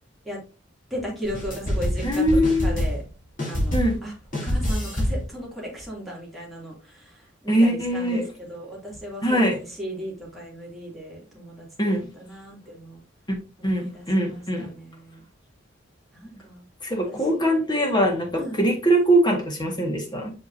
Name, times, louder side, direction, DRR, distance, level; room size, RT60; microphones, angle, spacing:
voice 1, 0.9-3.0 3.5-3.7 4.0-4.1 4.4-13.0 13.6-15.2 16.1-16.6 17.0-17.6 18.4-18.6, equal, ahead, -5 dB, 2.8 m, -36 dB
sound 1, 1.2-3.1 3.4-4.1 4.3-5.3, equal, 40° left, 3.1 m, -26 dB
voice 2, 2.0-2.7 3.7-4.0 7.5-8.2 9.2-9.6 11.8-12.1 13.3-13.4 13.6-14.7 16.8-20.3, right 1 dB, 20° left, 1 dB, 1.7 m, -22 dB
6.4 x 5.6 x 2.7 m, 0.33 s
head